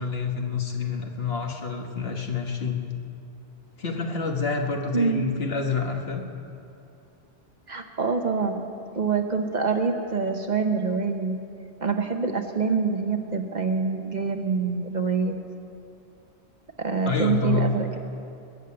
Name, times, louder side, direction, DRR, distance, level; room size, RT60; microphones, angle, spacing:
voice 1, 0.0-2.8 3.8-6.2 17.0-17.7, left 4 dB, 65° left, 2 dB, 1.6 m, -27 dB
voice 2, 7.7-8.6 8.9-11.4 11.8-15.4 16.8-18.0, right 5 dB, 45° right, 5 dB, 0.9 m, -25 dB
21.0 x 7.4 x 8.6 m, 2.7 s
omnidirectional pair, 1.1 m